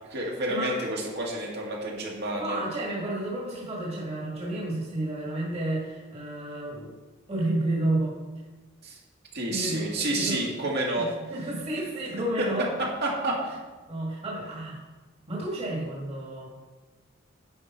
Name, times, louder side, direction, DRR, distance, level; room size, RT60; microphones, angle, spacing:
voice 1, 0.1-2.6 8.8-9.0 9.3-11.1 12.8-13.6, right 1 dB, 55° right, -2 dB, 1.9 m, -29 dB
voice 2, 2.3-6.9 7.3-8.1 9.5-10.4 11.0-12.7 13.9-14.8 15.3-16.5, right 1 dB, 30° right, -4 dB, 2.0 m, -31 dB
10.5 x 5.3 x 4.4 m, 1.3 s
head